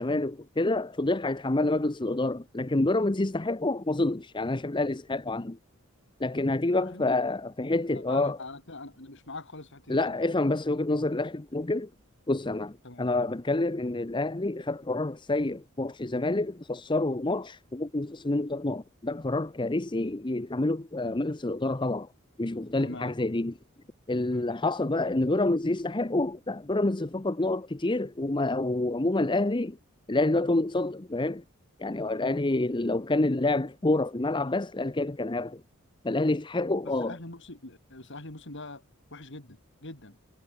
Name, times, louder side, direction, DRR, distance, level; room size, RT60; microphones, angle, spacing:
voice 1, 0.0-5.6 6.2-8.4 9.9-11.9 12.3-22.1 22.4-23.5 24.1-29.8 30.1-31.4 31.8-35.6 36.0-37.2, left 2 dB, 20° left, 0.7 m, -28 dB
voice 2, 6.6-7.1 7.9-10.2 12.8-13.1 22.8-23.1 24.3-24.5 32.2-32.5 36.8-38.8 39.1-40.2, left 2 dB, 55° left, 3.6 m, -43 dB
head